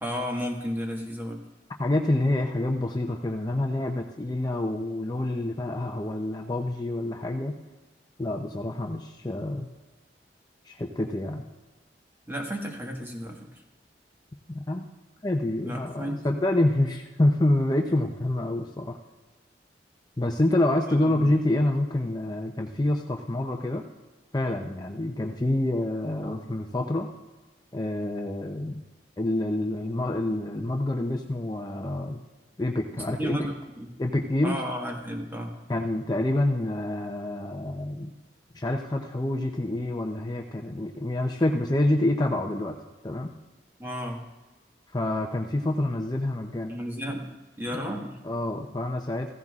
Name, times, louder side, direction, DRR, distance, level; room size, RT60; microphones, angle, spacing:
voice 1, 0.0-1.4 12.3-13.5 15.6-16.3 20.9-21.3 32.9-33.9 34.4-35.6 43.8-44.2 46.7-47.3 47.6-48.2, equal, 10° right, 0 dB, 1.5 m, -33 dB
voice 2, 1.8-7.6 8.2-9.7 10.6-11.4 14.5-14.9 15.2-19.0 20.2-23.8 24.3-27.1 27.7-28.8 29.2-32.2 32.6-33.4 34.0-34.6 35.7-38.1 38.5-42.8 43.0-43.3 44.9-46.8 47.7-49.3, left 1 dB, 25° left, 2 dB, 0.6 m, -27 dB
16.0 x 14.5 x 2.5 m, 1.2 s
head